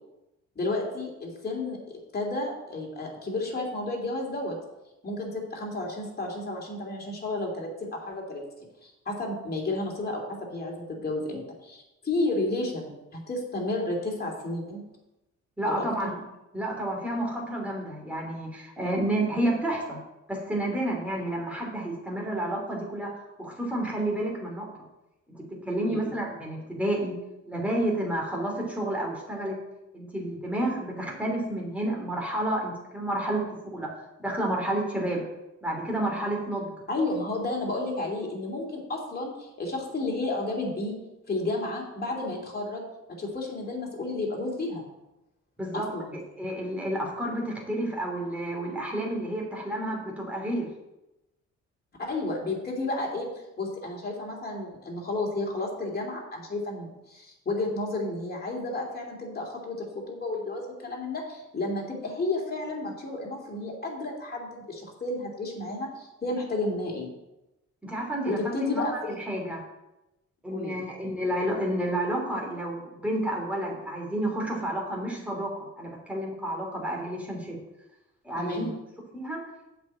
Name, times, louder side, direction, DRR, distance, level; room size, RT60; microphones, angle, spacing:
voice 1, 0.5-4.6 5.0-8.4 8.8-14.8 15.6-16.1 25.8-26.1 36.9-41.0 41.3-42.8 43.1-44.8 45.7-46.2 52.0-53.3 53.6-67.1 68.2-68.9 70.5-70.9 78.4-78.7, left 2 dB, 30° left, -1 dB, 2.9 m, -32 dB
voice 2, 15.6-16.1 16.5-20.0 20.3-24.7 25.3-27.1 27.5-29.6 29.9-33.4 33.7-33.9 34.2-35.2 35.6-36.7 45.6-45.9 46.4-50.7 67.8-68.4 68.7-69.6 70.4-77.6 78.2-78.7 79.1-79.4, right 1 dB, 5° right, -1 dB, 3.1 m, -30 dB
7.7 x 5.2 x 7.5 m, 0.94 s
cardioid pair, 90°, 30 cm